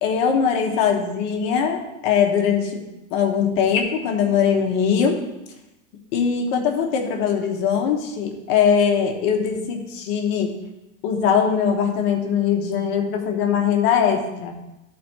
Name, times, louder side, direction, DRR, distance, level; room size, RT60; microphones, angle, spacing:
voice 1, 0.0-2.8 3.1-5.2 6.1-10.5 11.0-14.5, left 7 dB, 45° left, 2 dB, 1.3 m, -21 dB
12.5 x 4.3 x 4.4 m, 0.97 s
supercardioid pair, 155°, 42 cm